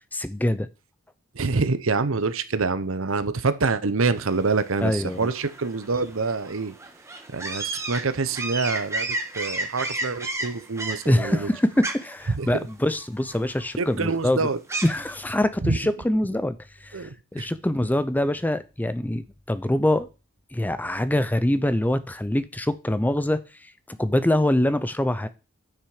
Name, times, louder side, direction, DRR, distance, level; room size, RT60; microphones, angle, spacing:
voice 1, 0.1-0.7 4.8-5.3 11.1-14.4 14.8-20.1 20.5-25.3, left 1 dB, 10° left, 0.5 m, -24 dB
voice 2, 1.3-6.7 7.3-9.1 9.3-11.5 12.3-12.5 13.8-14.6 15.6-15.8 16.9-17.5, right 4 dB, 65° right, 0.8 m, -26 dB
sound 1, 4.2-15.2, right 2 dB, 15° right, 1.3 m, -33 dB
10.0 x 6.0 x 4.9 m
head